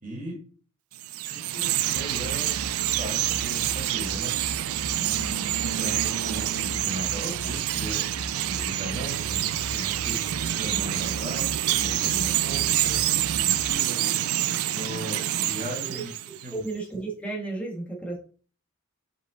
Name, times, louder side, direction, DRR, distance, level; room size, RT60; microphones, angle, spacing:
voice 1, 0.0-0.4 1.2-4.4 4.8-16.1 16.4-16.7, equal, 40° right, -2 dB, 2.8 m, -38 dB
Chirp tweet, 0.9-16.5, right 12 dB, 85° right, 0.4 m, -27 dB
sound 1, 1.9-13.7, equal, 30° left, 1.5 m, -40 dB
voice 2, 15.8-18.2, right 3 dB, 5° left, -2 dB, 1.4 m, -34 dB
5.5 x 5.1 x 3.8 m, 0.40 s
head